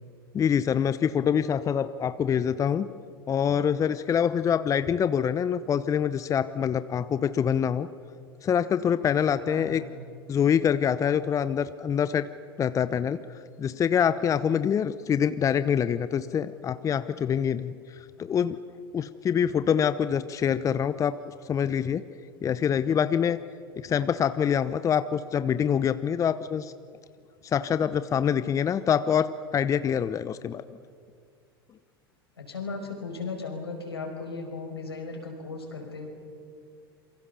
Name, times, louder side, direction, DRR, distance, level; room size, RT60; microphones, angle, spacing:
voice 1, 0.3-2.9 3.3-7.9 8.4-9.8 10.3-12.3 12.6-13.2 13.6-17.7 18.2-18.6 18.9-22.1 22.4-23.4 23.8-26.7 27.4-30.6, left 8 dB, 25° left, 13 dB, 0.8 m, -25 dB
voice 2, 9.5-9.8 32.4-36.1, left 4 dB, 85° left, 2 dB, 5.6 m, -36 dB
27.0 x 24.0 x 7.0 m, 2.2 s
figure-of-eight pair, 90°, 13 cm